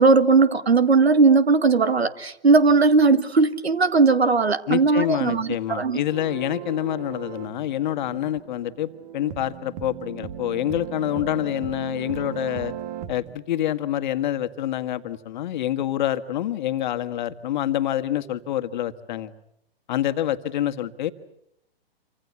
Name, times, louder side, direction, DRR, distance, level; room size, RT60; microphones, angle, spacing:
voice 1, 0.0-6.0, right 4 dB, 85° right, 13 dB, 1.9 m, -18 dB
voice 2, 4.7-12.7 13.1-19.3 19.9-21.1, left 12 dB, 50° left, 9 dB, 1.7 m, -27 dB
sound 1, 6.1-13.3, right 10 dB, 40° right, 1.8 m, -37 dB
27.5 x 25.5 x 8.3 m, 0.77 s
hypercardioid pair, 130°, 31 cm